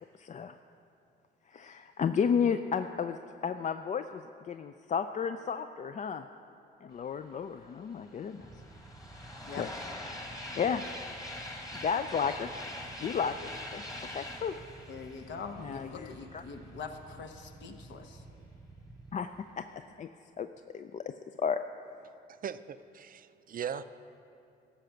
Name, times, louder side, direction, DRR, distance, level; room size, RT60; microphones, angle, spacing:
voice 1, 0.1-0.6 1.5-6.2 6.8-8.5 9.5-9.7 10.6-10.8 11.8-12.5 13.0-13.9 14.1-14.6 15.6-16.4 19.1-19.3 19.6-19.7 20.0-20.1 20.4-21.6, left 6 dB, 40° left, 9 dB, 0.4 m, -33 dB
sound 1, 7.5-7.6 7.8-16.4, left 1 dB, 20° left, 1.5 m, -43 dB
Motorcycle / Idling, 8.4-19.1, right 3 dB, 10° right, 0.7 m, -52 dB
voice 2, 14.9-18.2, left 5 dB, 70° left, 6 dB, 1.0 m, -43 dB
voice 3, 22.4-23.8, right 8 dB, 45° right, 13 dB, 0.4 m, -39 dB
13.0 x 5.8 x 7.6 m, 2.6 s
cardioid pair, 90°, 20 cm